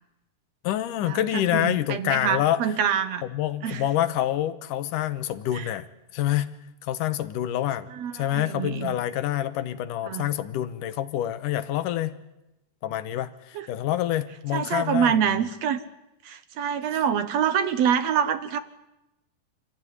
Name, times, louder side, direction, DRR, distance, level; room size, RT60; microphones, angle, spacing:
voice 1, 0.6-2.7 3.2-5.9 6.1-6.6 6.8-7.9 8.1-12.2 12.8-15.2 16.9-17.0, left 12 dB, 85° left, 13 dB, 2.6 m, -27 dB
voice 2, 1.5-3.2 3.6-3.8 5.5-5.6 7.9-9.0 10.1-10.3 13.6-13.7 14.5-15.8 16.3-18.6, right 8 dB, 65° right, 12 dB, 1.9 m, -25 dB
26.5 x 16.0 x 9.6 m, 0.95 s
omnidirectional pair, 3.6 m